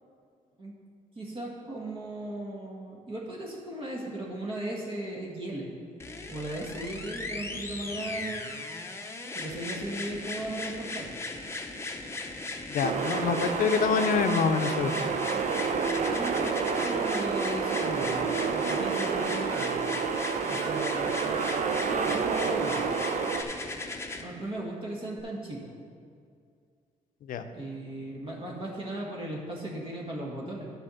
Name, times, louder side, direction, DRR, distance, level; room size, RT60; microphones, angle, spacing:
voice 1, 1.1-5.7 6.3-8.5 9.3-11.1 13.3-13.5 16.0-19.8 20.5-22.9 24.2-25.7 27.5-30.7, right 1 dB, 40° right, -3 dB, 1.6 m, -37 dB
sound 1, 6.0-24.2 25.2-25.3, left 3 dB, 20° left, 0.8 m, -38 dB
voice 2, 12.7-15.2 27.3-27.4, left 6 dB, 70° left, 8 dB, 0.6 m, -26 dB
sound 2, 12.8-23.4, right 5 dB, 60° right, 0.7 m, -29 dB
10.0 x 4.6 x 7.0 m, 2.2 s
cardioid pair, 120°, 15 cm